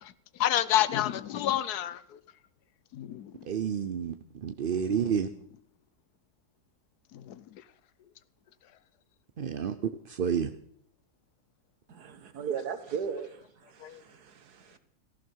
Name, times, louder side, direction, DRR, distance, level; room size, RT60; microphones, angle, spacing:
voice 1, 0.0-2.2 2.9-3.5 5.0-5.1 7.1-7.6 13.8-14.0, left 11 dB, 80° left, 1.3 m, -30 dB
voice 2, 3.4-5.3 9.4-9.8 10.1-10.5, right 7 dB, 50° right, 0.6 m, -30 dB
voice 3, 11.9-14.8, right 7 dB, 80° right, 1.8 m, -37 dB
17.0 x 14.5 x 4.6 m
omnidirectional pair, 1.7 m